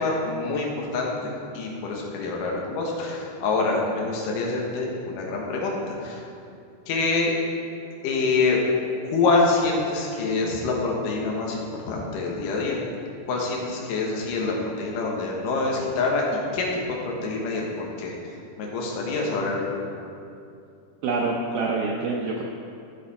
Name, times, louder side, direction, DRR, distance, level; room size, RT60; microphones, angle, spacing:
voice 1, 0.0-6.3 6.9-7.3 8.0-8.6 9.0-12.8 13.2-16.7 17.0-18.3 18.6-19.8, left 3 dB, 65° left, -2 dB, 2.6 m, -26 dB
voice 2, 21.0-22.4, right 3 dB, 75° right, -2 dB, 2.3 m, -26 dB
14.0 x 6.8 x 4.3 m, 2.5 s
omnidirectional pair, 4.7 m